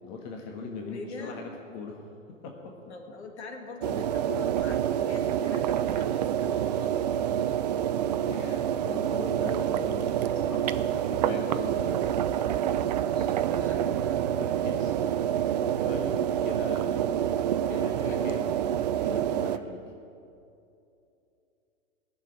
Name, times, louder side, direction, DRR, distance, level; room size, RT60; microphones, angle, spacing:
voice 1, 0.0-2.0 2.4-2.8 8.2-12.3 14.3-15.0 15.3-17.2 17.7-18.6 19.0-19.8, left 4 dB, 35° left, 1 dB, 1.7 m, -40 dB
voice 2, 0.8-1.5 2.9-7.5 10.1-10.5 11.2-11.7 13.0-13.8 17.7-18.4, left 3 dB, 60° left, 3 dB, 2.0 m, -44 dB
sound 1, 3.8-19.6, right 10 dB, 35° right, 0.5 m, -27 dB
Bowed string instrument, 12.2-17.0, right 6 dB, 50° right, 1.0 m, -43 dB
19.5 x 7.0 x 9.2 m, 2.7 s
figure-of-eight pair, 110°, 38 cm